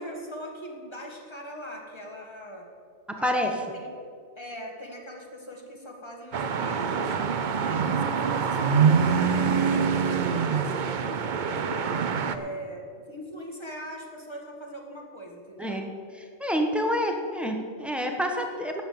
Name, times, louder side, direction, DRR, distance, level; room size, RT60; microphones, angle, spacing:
voice 1, 0.0-2.7 3.2-3.9 4.3-7.2 7.5-11.8 12.3-15.8, equal, 20° left, 0 dB, 1.8 m, -41 dB
voice 2, 3.2-3.5 15.6-15.9 16.4-18.8, equal, ahead, 2 dB, 1.2 m, -27 dB
sound 1, 6.3-12.4, right 6 dB, 50° right, 0.6 m, -25 dB
11.5 x 7.4 x 8.6 m, 2.2 s
omnidirectional pair, 1.4 m